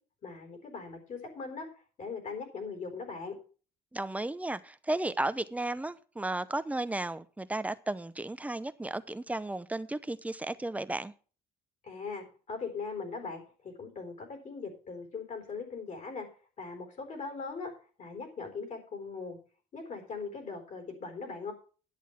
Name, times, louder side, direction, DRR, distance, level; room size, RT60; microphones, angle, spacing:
voice 1, 0.2-1.7 2.0-3.4 11.8-16.3 16.6-17.7 18.0-19.4 19.7-21.5, left 4 dB, 45° left, 4.1 m, -40 dB
voice 2, 3.9-11.1, right 2 dB, 10° right, 0.7 m, -34 dB
10.5 x 8.1 x 5.8 m
cardioid pair, 110°, 17 cm